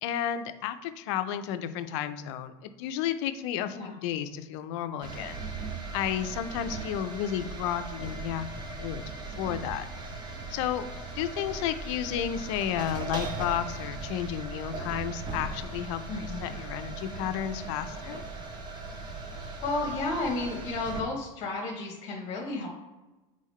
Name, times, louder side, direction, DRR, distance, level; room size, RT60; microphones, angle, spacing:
voice 1, 0.0-5.4 5.9-9.1 9.4-9.9 10.5-10.8 11.2-18.2, left 10 dB, 70° left, 11 dB, 0.4 m, -32 dB
sound 1, 5.0-21.0, right 3 dB, 30° right, 0.7 m, -38 dB
voice 2, 16.1-16.4 19.6-22.7, left 3 dB, 45° left, -1 dB, 0.9 m, -32 dB
3.8 x 3.6 x 3.1 m, 1.1 s
supercardioid pair, 130°, 16 cm